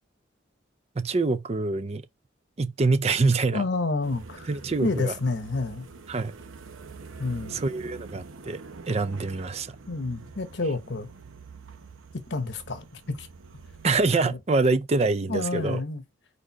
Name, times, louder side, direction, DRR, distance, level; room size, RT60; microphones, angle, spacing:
voice 1, 1.0-2.0 2.6-3.6 4.5-5.1 6.1-6.3 7.5-8.6 8.9-9.8 13.8-15.8, right 3 dB, 30° right, 0.4 m, -25 dB
voice 2, 3.5-4.5 4.8-5.9 7.2-7.6 9.9-11.1 12.3-13.3 14.2-14.4 15.3-16.0, left 3 dB, 60° left, 1.0 m, -29 dB
sound 1, 4.0-14.1, right 4 dB, 85° right, 0.8 m, -45 dB
5.0 x 4.2 x 4.6 m
head